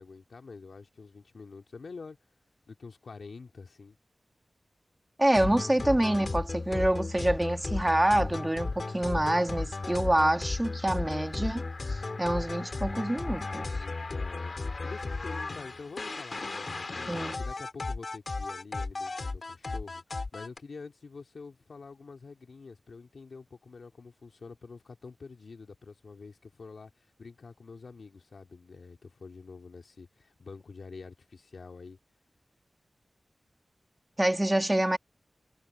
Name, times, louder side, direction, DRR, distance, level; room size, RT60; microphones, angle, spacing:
voice 1, 0.0-2.2 2.7-4.0 13.7-32.0, left 4 dB, 85° left, 2.7 m, -47 dB
voice 2, 5.2-13.7 17.1-17.4 34.2-35.0, right 1 dB, 20° right, 1.6 m, -27 dB
sound 1, 5.3-20.6, left 3 dB, 55° left, 3.5 m, -35 dB
wide cardioid pair, 70°, 0 cm